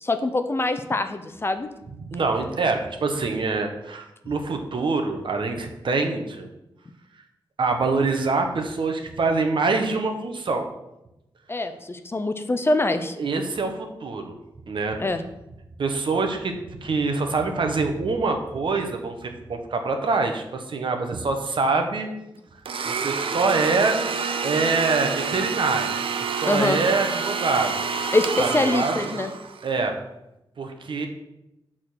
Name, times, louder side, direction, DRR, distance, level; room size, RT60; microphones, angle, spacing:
voice 1, 0.0-1.7 11.5-13.2 15.0-15.2 26.5-26.8 28.1-29.3, left 2 dB, 25° left, 9 dB, 0.5 m, -24 dB
voice 2, 2.0-6.5 7.6-10.7 13.2-14.3 14.7-15.0 15.8-22.1 22.8-24.0 24.4-25.9 26.3-27.7 28.4-29.1 29.6-30.0 30.6-31.1, right 3 dB, 70° right, 5 dB, 0.9 m, -25 dB
Domestic sounds home sounds, 22.7-29.7, right 5 dB, 85° right, 0.5 m, -28 dB
6.5 x 3.7 x 6.2 m, 0.90 s
wide cardioid pair, 120°, 9 cm